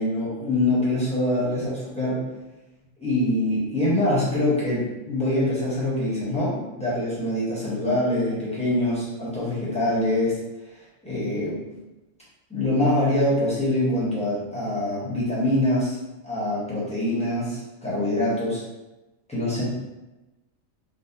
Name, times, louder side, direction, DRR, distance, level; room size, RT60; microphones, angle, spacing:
voice 1, 0.0-2.2 3.0-10.4 11.0-11.6 12.5-16.0 16.2-18.6 19.3-19.6, left 1 dB, 5° left, -9 dB, 1.0 m, -24 dB
3.9 x 2.2 x 2.8 m, 1.0 s
omnidirectional pair, 1.4 m